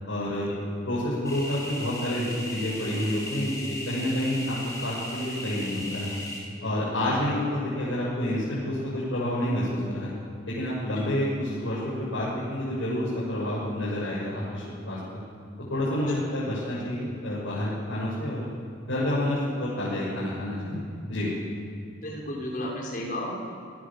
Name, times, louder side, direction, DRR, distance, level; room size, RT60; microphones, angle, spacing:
voice 1, 0.1-0.5 0.8-6.1 6.6-10.1 10.4-15.2 15.7-18.5 18.9-21.3, left 1 dB, 80° left, -8 dB, 6.8 m, -29 dB
sound 1, 1.2-6.4, left 1 dB, 15° left, 4.7 m, -37 dB
voice 2, 22.0-23.4, left 1 dB, 45° left, -3 dB, 5.3 m, -34 dB
27.0 x 18.5 x 7.4 m, 2.4 s
head